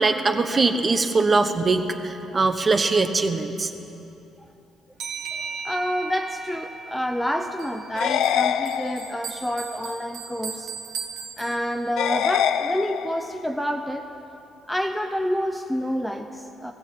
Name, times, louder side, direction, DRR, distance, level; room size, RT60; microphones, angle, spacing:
voice 1, 0.0-3.7, right 3 dB, 20° right, 7 dB, 1.1 m, -22 dB
sound 1, 5.0-8.3, right 4 dB, 50° right, 2.7 m, -36 dB
voice 2, 5.3-10.7 11.4-14.1 14.7-16.7, equal, 5° left, 5 dB, 0.7 m, -28 dB
Bell, 7.6-12.1, right 7 dB, 70° right, 1.7 m, -39 dB
sound 2, 7.9-9.4 12.0-13.4, left 9 dB, 75° left, 0.7 m, -25 dB
19.0 x 16.0 x 8.7 m, 2.9 s
cardioid pair, 160°, 0 cm